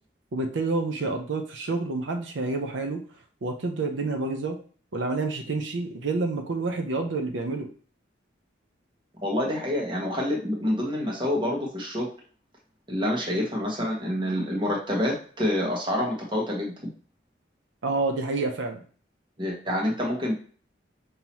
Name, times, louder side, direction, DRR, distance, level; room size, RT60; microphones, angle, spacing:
voice 1, 0.3-3.0 3.4-4.6 4.9-7.7 17.8-18.8, right 3 dB, 85° right, 4 dB, 0.6 m, -28 dB
voice 2, 9.2-12.1 12.9-16.7 19.4-20.3, left 1 dB, 25° right, -2 dB, 1.2 m, -27 dB
5.5 x 2.8 x 3.0 m, 0.42 s
head